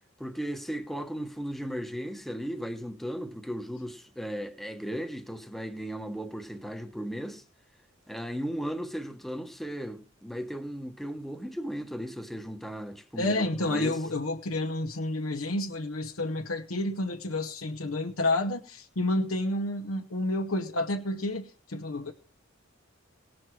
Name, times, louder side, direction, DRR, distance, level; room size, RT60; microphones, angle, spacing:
voice 1, 0.2-7.4 8.1-14.0, equal, ahead, 1.0 m, -36 dB
voice 2, 13.1-22.1, left 2 dB, 75° left, 0.9 m, -30 dB
18.5 x 6.3 x 4.6 m
head